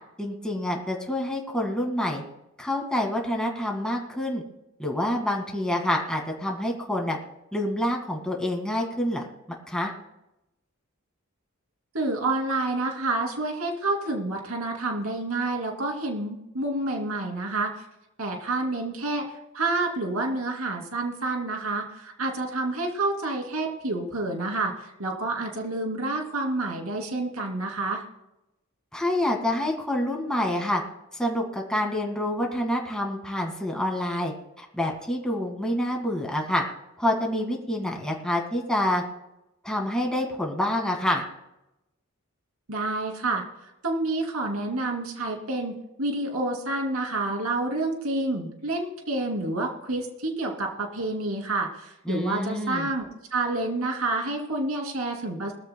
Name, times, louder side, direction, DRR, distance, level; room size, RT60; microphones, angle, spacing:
voice 1, 0.2-2.2 2.6-4.4 4.8-7.2 7.5-9.2 9.7-9.9 28.9-30.8 31.1-36.6 37.0-39.0 39.6-41.2 52.1-52.9, left 1 dB, 5° left, 0 dB, 2.0 m, -27 dB
voice 2, 11.9-17.8 18.2-28.0 42.7-55.5, right 2 dB, 85° right, 1 dB, 2.8 m, -29 dB
21.0 x 14.5 x 2.3 m, 0.90 s
head